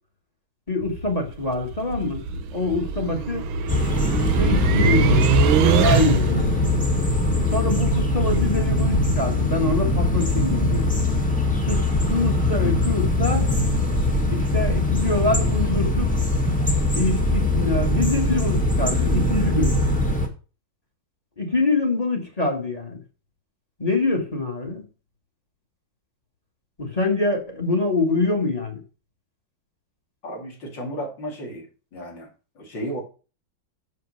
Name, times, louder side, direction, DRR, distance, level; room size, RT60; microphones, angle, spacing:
voice 1, 0.7-2.3 2.5-3.4 4.4-5.3 5.6-6.5 7.5-10.8 11.7-13.5 14.3-16.1 16.9-19.8 21.4-23.0 23.8-24.8 26.8-28.8, left 3 dB, 20° left, 2 dB, 1.7 m, -25 dB
sound 1, 0.8-6.5, right 6 dB, 85° right, 1.5 m, -23 dB
sound 2, 3.7-20.3, left 1 dB, 5° left, 1.3 m, -22 dB
voice 2, 30.2-31.7 31.9-32.3 32.6-33.0, equal, 65° left, 1 dB, 3.3 m, -33 dB
6.6 x 6.4 x 6.4 m, 0.35 s
omnidirectional pair, 2.2 m